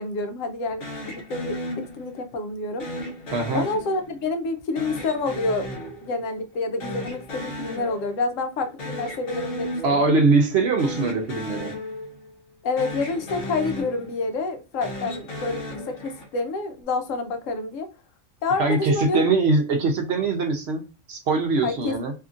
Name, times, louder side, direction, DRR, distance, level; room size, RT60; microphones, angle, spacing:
voice 1, 0.0-1.6 1.9-2.8 3.5-5.7 6.0-10.0 12.6-15.6 15.9-17.9 18.4-19.3 21.6-22.0, left 3 dB, 80° left, 1.0 m, -28 dB
sound 1, 0.8-2.3 2.8-4.3 4.8-6.5 6.8-8.3 8.6-10.3 10.7-12.5 12.8-14.3 14.7-16.5, left 1 dB, 50° left, 1.0 m, -35 dB
voice 2, 3.3-3.7 9.8-11.7 18.6-20.8 21.1-22.1, right 3 dB, 60° right, 0.8 m, -22 dB
2.8 x 2.6 x 2.4 m
omnidirectional pair, 1.3 m